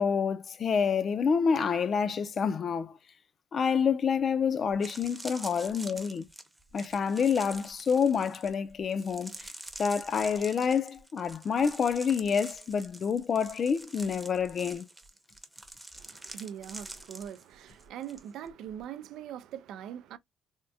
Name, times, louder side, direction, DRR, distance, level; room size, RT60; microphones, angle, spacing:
voice 1, 0.0-2.9 3.5-6.3 6.7-9.4 9.8-14.9, left 6 dB, 50° left, 0.5 m, -28 dB
sound 1, 4.2-4.3 4.7-18.2 18.5-18.8, right 1 dB, 10° right, 0.7 m, -46 dB
voice 2, 15.9-20.2, right 9 dB, 85° right, 0.3 m, -42 dB
3.5 x 2.2 x 2.6 m
cardioid pair, 90°, 0 cm